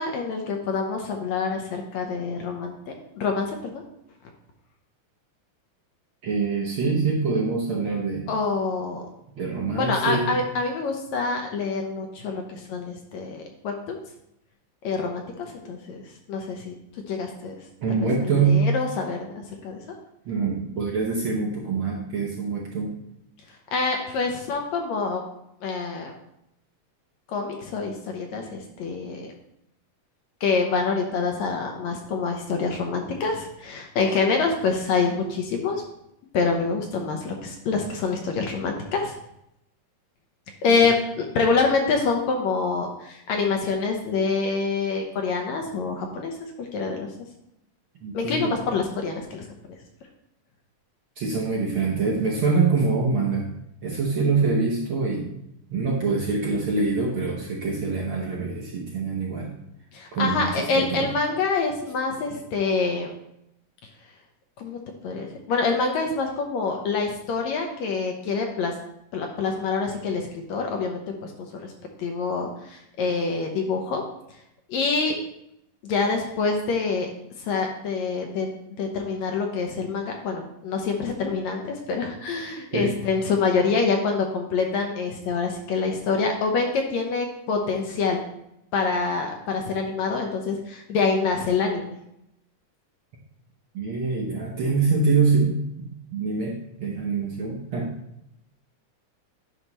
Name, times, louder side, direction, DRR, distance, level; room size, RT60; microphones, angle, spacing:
voice 1, 0.0-2.7 3.2-3.8 8.3-9.0 9.8-14.0 14.8-16.0 16.3-16.7 17.1-17.5 17.9-18.0 18.4-19.8 23.7-25.2 25.6-26.1 27.3-29.3 30.4-35.8 36.3-39.1 40.6-46.3 46.6-47.1 48.1-49.5 59.9-63.1 64.6-64.8 65.0-68.7 69.1-71.7 72.0-74.0 74.7-75.2 75.8-77.1 77.4-78.5 78.8-88.2 88.7-92.0, left 4 dB, 75° left, 2 dB, 1.8 m, -26 dB
voice 2, 6.2-8.3 9.4-10.4 17.8-18.7 20.2-22.9 40.7-40.9 48.0-48.5 51.2-53.5 53.8-55.3 55.7-59.5 60.1-61.1 82.7-82.9 93.7-97.9, right 4 dB, 75° right, -2 dB, 1.2 m, -25 dB
9.9 x 5.4 x 3.0 m, 0.80 s
omnidirectional pair, 3.6 m